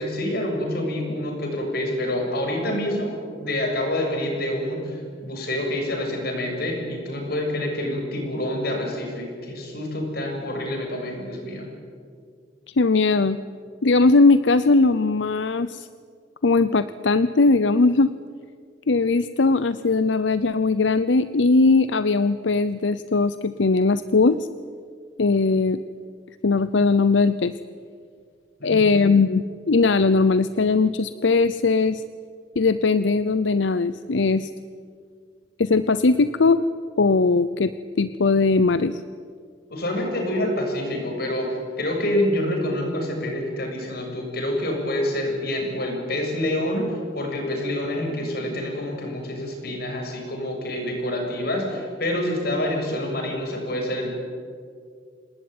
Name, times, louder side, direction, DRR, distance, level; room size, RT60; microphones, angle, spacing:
voice 1, 0.0-11.7 28.6-28.9 39.7-41.5 41.8-54.1, left 1 dB, 60° left, 2 dB, 7.2 m, -27 dB
voice 2, 12.8-13.4 13.8-15.9 16.4-18.1 18.9-24.4 25.2-25.8 26.4-27.5 28.6-32.0 32.6-34.5 35.6-36.6 37.0-37.7 38.0-39.0, left 3 dB, 85° left, 13 dB, 0.7 m, -19 dB
27.5 x 19.0 x 9.6 m, 2.1 s
head